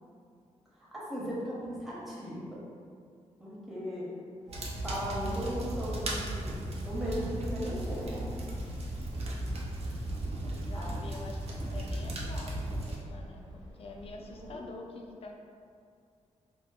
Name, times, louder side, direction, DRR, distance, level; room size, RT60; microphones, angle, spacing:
voice 1, 0.7-2.4 3.4-4.1 4.8-6.5 6.8-8.3 10.7-11.0 14.5-14.6, equal, ahead, -8 dB, 0.9 m, -37 dB
sound 1, 4.5-13.0, right 1 dB, 55° right, 0.5 m, -36 dB
sound 2, 4.5-10.2, left 1 dB, 80° right, 1.1 m, -46 dB
sound 3, 7.8-14.6, equal, 30° right, 1.0 m, -50 dB
voice 2, 10.5-15.4, left 3 dB, 50° left, 1 dB, 0.4 m, -46 dB
2.8 x 2.1 x 4.0 m, 2.3 s
wide cardioid pair, 125°, 12 cm